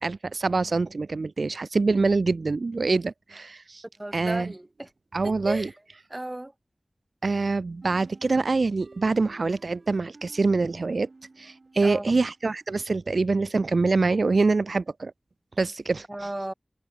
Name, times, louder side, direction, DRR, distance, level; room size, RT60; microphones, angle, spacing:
voice 1, 0.0-3.8 4.1-4.5 5.1-5.7 7.2-11.1 11.4-15.1 15.6-16.1, right 3 dB, 80° right, 0.5 m, -25 dB
voice 2, 4.0-4.9 5.2-5.7 6.1-6.5 11.8-12.1 16.1-16.5, right 1 dB, 25° right, 1.3 m, -34 dB
sound 1, 7.8-12.5, right 3 dB, 65° right, 5.7 m, -52 dB
wide cardioid pair, 65°, 0 cm